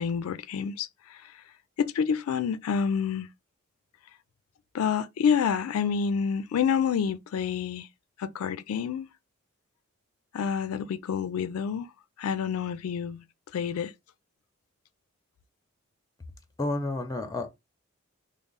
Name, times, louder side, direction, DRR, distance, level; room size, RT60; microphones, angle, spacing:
voice 1, 0.0-1.4 1.8-3.3 4.7-7.9 8.2-9.1 10.3-11.9 12.2-13.2 13.5-13.9, left 7 dB, 85° left, 0.3 m, -28 dB
voice 2, 16.6-17.5, left 2 dB, 15° left, 0.6 m, -30 dB
3.6 x 2.0 x 3.8 m
head